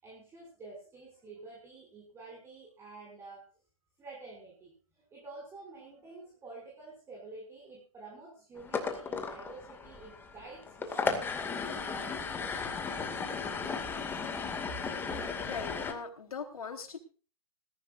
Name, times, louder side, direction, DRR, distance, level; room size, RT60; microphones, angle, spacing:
voice 1, 0.0-3.4 4.0-12.8 14.7-14.9 15.2-15.4, right 3 dB, 15° right, -2 dB, 6.0 m, -49 dB
sound 1, 8.6-15.9, left 5 dB, 10° left, 2.2 m, -35 dB
voice 2, 15.0-17.0, left 5 dB, 85° left, 4 dB, 4.0 m, -41 dB
21.0 x 15.0 x 2.6 m, 0.38 s
hypercardioid pair, 145°, 18 cm